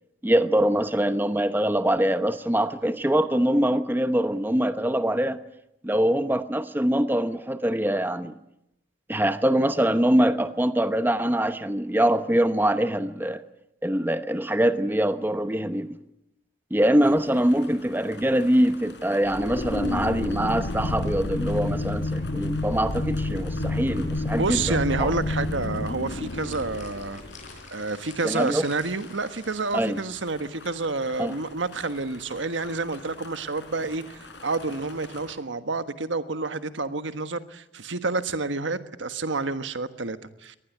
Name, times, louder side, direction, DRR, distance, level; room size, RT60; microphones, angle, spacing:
voice 1, 0.2-5.4 5.8-8.4 9.1-13.4 13.8-16.0 16.7-24.6 25.0-25.1 25.8-25.9 28.2-28.6 29.7-30.0 31.2-31.3, right 1 dB, 10° right, 0.9 m, -23 dB
sound 1, 17.0-35.4, left 3 dB, 70° left, 5.1 m, -47 dB
sound 2, 19.3-27.5, left 2 dB, 85° left, 1.4 m, -29 dB
voice 2, 24.3-27.2 27.7-40.6, right 3 dB, 85° right, 1.4 m, -29 dB
sound 3, 26.2-29.9, left 4 dB, 40° left, 7.5 m, -49 dB
24.0 x 19.5 x 9.4 m
head